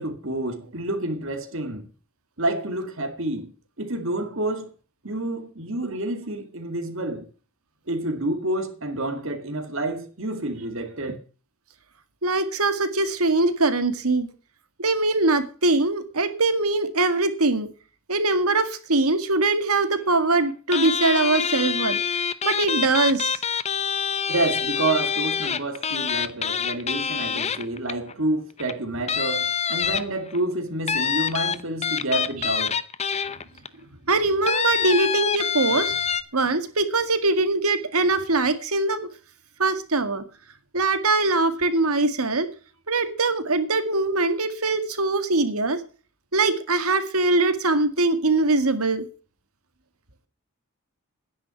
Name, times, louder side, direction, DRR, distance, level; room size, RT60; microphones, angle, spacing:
voice 1, 0.0-1.9 2.4-3.5 3.8-4.7 5.0-7.3 7.9-11.2 24.3-32.8, right 2 dB, 60° right, 2.2 m, -28 dB
voice 2, 12.2-14.3 14.8-17.7 18.1-22.0 22.4-23.4 34.1-36.0 36.3-39.1 39.6-40.2 40.7-42.5 42.9-45.8 46.3-49.1, right 3 dB, 80° right, 2.0 m, -22 dB
sound 1, 20.7-28.1 28.6-28.7 29.1-30.4 30.9-33.7 34.5-36.2, left 7 dB, 30° left, 0.7 m, -26 dB
11.0 x 10.0 x 7.0 m
head